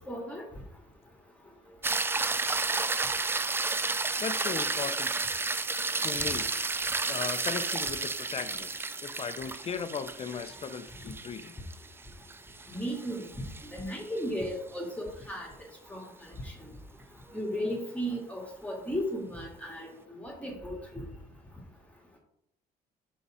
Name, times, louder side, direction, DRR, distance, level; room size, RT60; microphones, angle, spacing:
voice 1, 0.1-0.4 12.7-13.2 13.7-15.5 15.9-16.0 16.4-16.5 17.3-21.1, equal, 10° left, -1 dB, 1.9 m, -35 dB
sound 1, 1.8-14.2 18.7-18.8, right 3 dB, 15° right, 0.4 m, -32 dB
voice 2, 4.2-5.1 6.0-6.5 7.1-11.6, left 6 dB, 35° left, 10 dB, 0.7 m, -37 dB
5.6 x 5.5 x 4.9 m, 0.74 s
cardioid pair, 110°, 17 cm